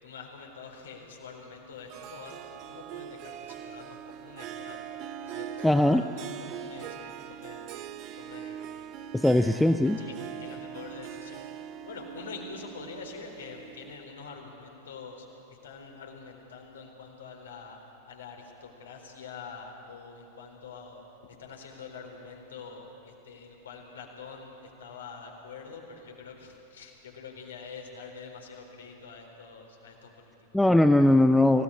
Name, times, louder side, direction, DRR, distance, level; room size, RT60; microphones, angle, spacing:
voice 1, 0.0-4.8 5.2-7.7 8.2-9.3 10.0-10.1 10.4-17.8 18.1-30.6, left 5 dB, 65° left, 1 dB, 4.1 m, -46 dB
Harp, 1.9-14.1, right 9 dB, 40° right, 1.0 m, -42 dB
voice 2, 5.6-6.0 9.1-10.0 30.5-31.6, left 1 dB, 5° left, 9 dB, 0.6 m, -20 dB
25.5 x 17.5 x 8.6 m, 2.9 s
figure-of-eight pair, 90°, 0 cm